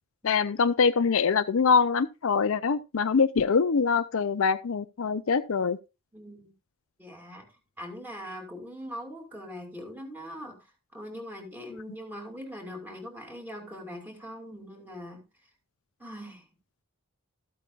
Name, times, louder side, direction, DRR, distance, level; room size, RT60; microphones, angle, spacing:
voice 1, 0.2-5.8, left 5 dB, 60° left, 0.5 m, -24 dB
voice 2, 6.1-6.5 7.0-10.7 10.9-15.2 16.0-16.5, equal, 10° right, 2.6 m, -42 dB
14.0 x 8.4 x 2.4 m
head